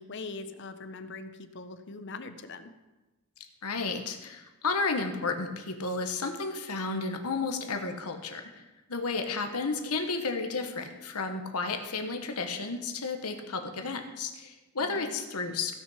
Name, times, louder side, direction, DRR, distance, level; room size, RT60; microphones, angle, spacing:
voice 1, 0.0-2.7 14.8-15.2, left 3 dB, 55° left, 10 dB, 0.7 m, -42 dB
voice 2, 3.6-8.4 8.9-15.7, left 4 dB, 85° left, 6 dB, 1.3 m, -32 dB
16.0 x 6.5 x 5.7 m, 1.1 s
head